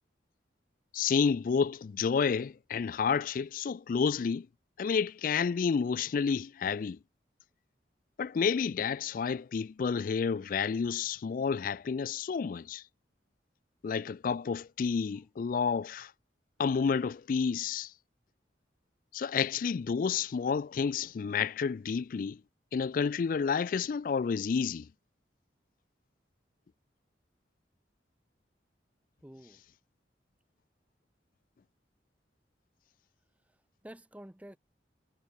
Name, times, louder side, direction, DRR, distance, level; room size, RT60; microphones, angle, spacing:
voice 1, 0.9-4.5 4.8-7.0 8.2-12.8 13.8-16.1 16.6-17.9 19.1-22.4 22.7-24.9, left 6 dB, 50° left, 0.3 m, -30 dB
voice 2, 29.2-29.6 33.4-34.6, right 1 dB, 10° right, 0.7 m, -50 dB
head